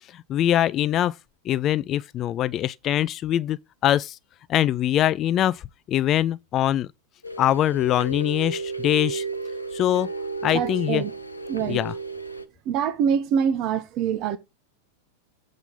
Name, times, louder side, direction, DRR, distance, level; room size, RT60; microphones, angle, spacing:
voice 1, 0.1-1.1 1.5-3.6 3.8-4.2 4.5-5.6 5.9-6.9 7.4-9.2 9.7-10.1 10.4-11.0 11.7-11.9, left 12 dB, 30° left, 0.4 m, -23 dB
sound 1, 7.2-12.5, right 3 dB, 80° left, 0.9 m, -33 dB
voice 2, 10.5-11.1 11.5-11.8 12.7-14.4, right 7 dB, 40° right, 1.0 m, -24 dB
8.0 x 3.8 x 6.5 m
figure-of-eight pair, 90°, 0 cm